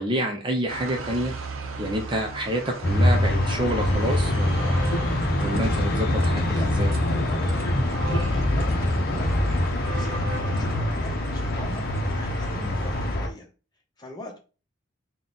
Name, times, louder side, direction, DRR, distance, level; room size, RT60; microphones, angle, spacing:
voice 1, 0.0-1.3 1.8-4.9 5.4-6.4 6.8-6.9, equal, 25° right, 2 dB, 0.5 m, -28 dB
sound 1, 0.7-13.2, right 3 dB, 90° right, 0.6 m, -38 dB
sound 2, 2.8-13.3, left 1 dB, 50° left, 0.7 m, -24 dB
voice 2, 6.5-11.8 12.1-13.5 14.0-14.4, left 1 dB, 20° left, 0 dB, 1.0 m, -42 dB
4.0 x 2.3 x 3.8 m, 0.34 s
head